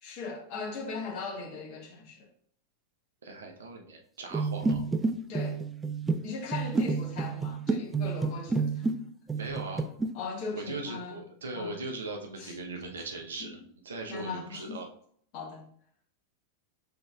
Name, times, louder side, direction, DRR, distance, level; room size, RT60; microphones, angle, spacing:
voice 1, 0.0-2.3 5.3-5.6 6.2-8.9 10.1-11.2 11.5-11.7 12.4-12.6 14.1-14.8 15.3-15.6, left 4 dB, 45° left, -2 dB, 1.4 m, -38 dB
voice 2, 3.2-4.8 9.3-9.8 10.5-14.9, right 2 dB, 65° right, 2 dB, 0.8 m, -39 dB
sound 1, 4.3-9.0 9.3-10.1, right 4 dB, 15° right, 0.3 m, -30 dB
5.0 x 3.7 x 2.4 m, 0.62 s
figure-of-eight pair, 90°, 0 cm